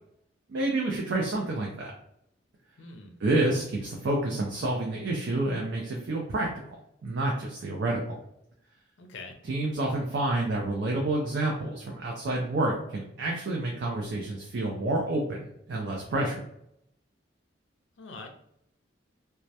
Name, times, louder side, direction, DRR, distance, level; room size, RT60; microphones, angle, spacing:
voice 1, 0.5-1.9 3.2-6.5 7.0-8.2 9.4-16.4, right 2 dB, 65° right, -1 dB, 0.4 m, -29 dB
voice 2, 2.8-3.1 9.0-9.3 18.0-18.3, left 3 dB, 70° left, 3 dB, 0.4 m, -43 dB
2.2 x 2.1 x 2.7 m, 0.74 s
head